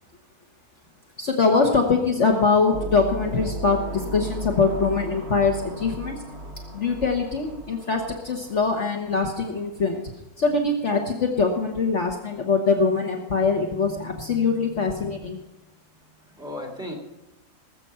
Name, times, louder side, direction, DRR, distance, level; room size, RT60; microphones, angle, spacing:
voice 1, 1.2-6.2 6.7-10.0 10.4-15.4, left 4 dB, 50° left, 2 dB, 1.5 m, -23 dB
sound 1, 2.7-9.2, right 1 dB, 50° right, 1.4 m, -36 dB
voice 2, 16.2-16.9, left 1 dB, 5° right, 0 dB, 3.0 m, -38 dB
19.0 x 8.0 x 5.7 m, 1.0 s
omnidirectional pair, 1.6 m